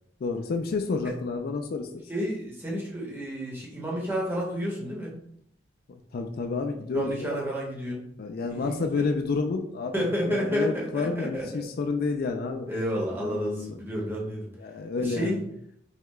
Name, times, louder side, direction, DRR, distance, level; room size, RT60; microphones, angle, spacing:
voice 1, 0.2-2.0 5.9-7.4 8.2-12.7 13.2-13.8 14.6-15.4, left 4 dB, 55° left, 6 dB, 0.4 m, -30 dB
voice 2, 2.1-5.1 6.9-8.0 8.5-9.1 9.9-11.6 12.7-14.5 15.0-15.4, equal, 10° right, -4 dB, 1.1 m, -30 dB
5.5 x 2.3 x 3.2 m, 0.72 s
head